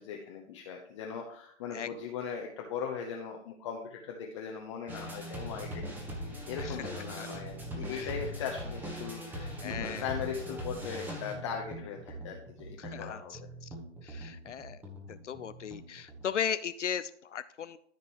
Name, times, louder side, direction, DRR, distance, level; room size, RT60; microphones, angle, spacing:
voice 1, 0.0-5.8 6.2-13.5, left 7 dB, 25° left, 1 dB, 0.8 m, -39 dB
sound 1, 4.9-16.2, equal, 5° right, 1.0 m, -41 dB
voice 2, 9.6-10.0 12.9-13.2 14.1-14.8 15.1-17.8, left 8 dB, 70° left, 12 dB, 0.6 m, -36 dB
13.0 x 5.2 x 3.0 m, 0.68 s
figure-of-eight pair, 140°, 37 cm